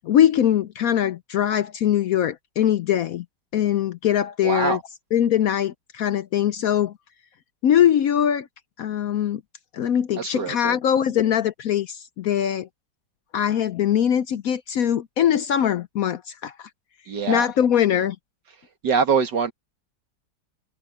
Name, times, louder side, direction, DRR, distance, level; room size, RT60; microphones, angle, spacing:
voice 1, 0.0-3.2 3.5-4.8 5.1-6.9 7.6-8.5 8.8-9.4 9.7-12.7 13.3-16.7 17.3-18.2, left 10 dB, 65° left, 0.9 m, -22 dB
voice 2, 4.4-4.8 10.2-10.8 17.1-17.5 18.8-19.5, right 5 dB, 75° right, 2.5 m, -23 dB
omnidirectional pair, 1.9 m